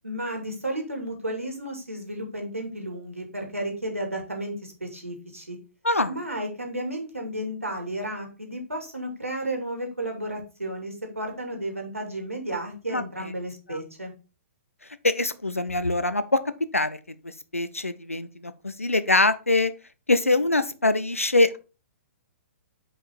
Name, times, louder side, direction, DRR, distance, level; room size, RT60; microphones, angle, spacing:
voice 1, 0.0-5.6 6.1-14.1, right 1 dB, 85° right, 2.5 m, -33 dB
voice 2, 5.8-6.1 12.9-13.3 13.7-13.8 15.0-16.4 16.7-17.0 17.2-19.7 20.1-21.6, left 2 dB, 85° left, 0.8 m, -23 dB
6.5 x 5.3 x 4.3 m
figure-of-eight pair, 120°, 7 cm